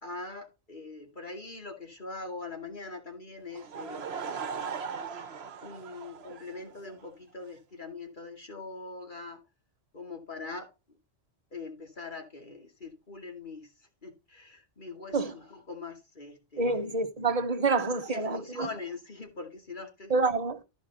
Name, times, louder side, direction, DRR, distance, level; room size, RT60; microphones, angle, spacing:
voice 1, 0.0-4.8 5.2-5.3 5.6-9.4 9.9-11.0 11.5-16.9 18.0-20.2, left 3 dB, 40° left, 2.5 m, -42 dB
Laughter / Crowd, 3.5-7.0, right 6 dB, 60° right, 1.1 m, -39 dB
voice 2, 16.6-18.7 20.1-20.6, right 3 dB, 35° right, 1.0 m, -27 dB
14.5 x 5.2 x 3.0 m
omnidirectional pair, 1.2 m